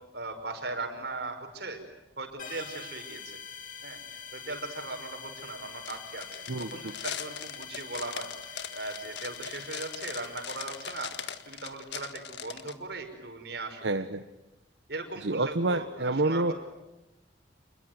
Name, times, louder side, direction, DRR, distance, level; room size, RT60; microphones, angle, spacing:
voice 1, 0.1-1.8 2.2-3.2 3.8-4.0 4.3-6.3 6.7-8.3 8.7-13.9 14.9-16.4, right 3 dB, 65° right, 5 dB, 5.6 m, -38 dB
sound 1, 2.4-11.8, left 7 dB, 50° left, 2.8 m, -45 dB
sound 2, 5.9-12.7, left 8 dB, 75° left, 1.8 m, -40 dB
voice 2, 6.5-6.9 13.8-14.2 15.2-16.5, right 2 dB, 85° right, 9 dB, 1.1 m, -28 dB
28.0 x 22.0 x 9.5 m, 0.97 s
head